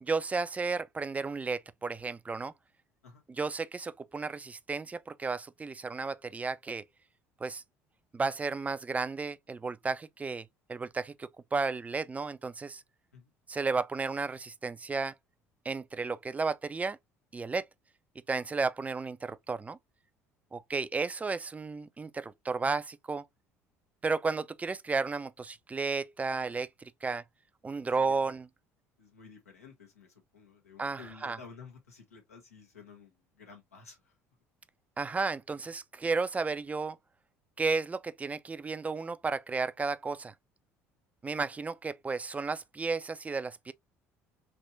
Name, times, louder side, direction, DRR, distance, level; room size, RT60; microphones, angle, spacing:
voice 1, 0.0-2.5 3.4-6.8 7.4-7.6 8.1-12.8 13.5-15.1 15.7-17.0 17.3-17.7 18.3-19.8 20.5-23.2 24.0-27.2 27.6-28.5 30.8-31.4 35.0-37.0 37.6-40.3 41.2-43.7, right 4 dB, 20° right, 0.4 m, -33 dB
voice 2, 28.0-28.4 29.0-34.2, left 5 dB, 90° left, 1.2 m, -53 dB
3.3 x 2.9 x 2.6 m
hypercardioid pair, 60°, 8 cm